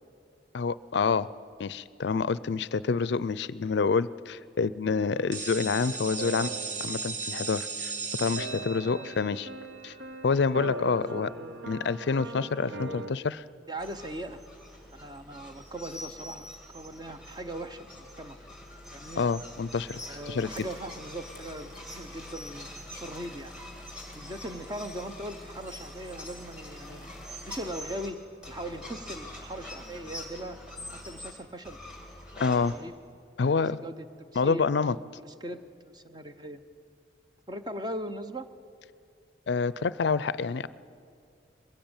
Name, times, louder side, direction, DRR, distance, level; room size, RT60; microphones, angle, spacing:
voice 1, 0.5-1.3 1.6-6.5 6.8-7.9 8.2-9.5 9.8-9.9 10.2-11.3 11.7-13.4 19.2-20.0 20.3-20.7 32.4-32.7 33.4-33.8 34.4-35.0 39.5-40.7, left 5 dB, 65° left, 18 dB, 0.4 m, -27 dB
sound 1, 4.8-13.1, right 2 dB, 80° right, 0.9 m, -41 dB
sound 2, 5.3-11.0, right 5 dB, 45° right, 1.1 m, -37 dB
voice 2, 8.8-9.1 10.5-13.1 13.7-14.4 14.9-18.4 18.9-19.2 20.1-23.5 24.1-27.1 27.4-28.2 28.5-30.6 31.1-31.8 32.6-32.9 33.6-34.7 35.2-36.6 37.5-38.5, right 1 dB, 20° right, 8 dB, 0.8 m, -40 dB
sound 3, 13.8-28.1 28.4-31.3 31.6-32.8, left 1 dB, 5° right, 2.1 m, -44 dB
21.5 x 16.0 x 8.8 m, 2.4 s
head